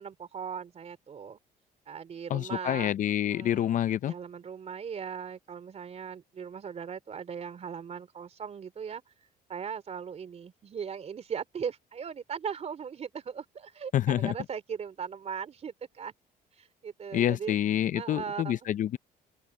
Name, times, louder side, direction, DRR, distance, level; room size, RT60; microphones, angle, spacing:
voice 1, 0.0-1.4 1.9-9.0 9.5-16.1 16.6-17.5 17.9-18.7, right 7 dB, 40° right, 3.1 m, -39 dB
voice 2, 2.3-4.1 13.9-14.3 17.1-19.0, left 11 dB, 50° left, 0.6 m, -27 dB
cardioid pair, 110°, 17 cm